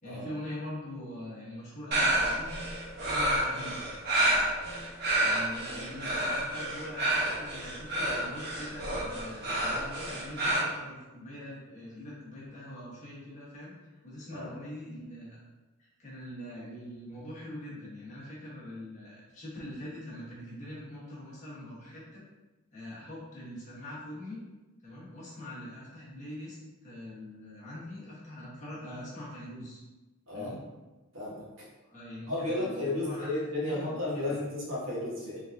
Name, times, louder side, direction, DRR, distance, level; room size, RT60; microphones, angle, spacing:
voice 1, 0.0-3.9 5.1-13.7 14.0-15.4 15.8-22.2 22.7-24.4 24.8-29.8 30.3-30.6 31.9-33.3 33.6-34.4, left 1 dB, 35° left, -7 dB, 1.2 m, -43 dB
sound 1, 1.9-10.6, right 1 dB, 50° right, 0.9 m, -29 dB
voice 2, 31.1-31.7 32.3-35.4, left 2 dB, 65° right, -6 dB, 1.3 m, -33 dB
3.8 x 3.4 x 2.6 m, 1.1 s
head